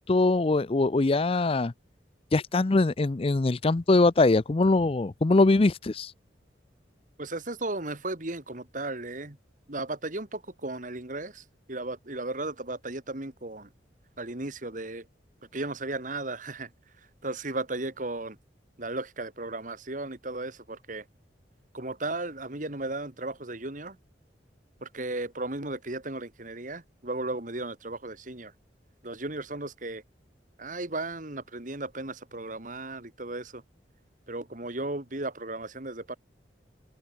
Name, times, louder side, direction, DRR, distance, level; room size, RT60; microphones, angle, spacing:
voice 1, 0.0-1.7 2.3-6.1, left 2 dB, 30° left, 0.5 m, -22 dB
voice 2, 7.2-9.4 9.7-13.7 14.2-15.1 15.5-16.7 17.2-18.4 18.8-21.1 21.7-24.0 24.8-28.5 29.0-30.0 30.6-33.6 34.3-36.2, right 2 dB, 45° right, 2.4 m, -35 dB
open air
head